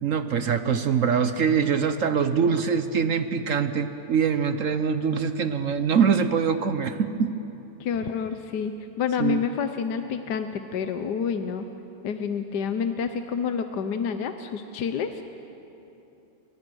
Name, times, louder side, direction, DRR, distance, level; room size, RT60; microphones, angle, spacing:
voice 1, 0.0-7.3 9.2-9.4, right 6 dB, 55° right, 10 dB, 1.0 m, -23 dB
voice 2, 7.8-11.7 12.0-15.2, left 6 dB, 70° left, 8 dB, 1.4 m, -28 dB
29.0 x 25.0 x 6.3 m, 2.9 s
omnidirectional pair, 1.9 m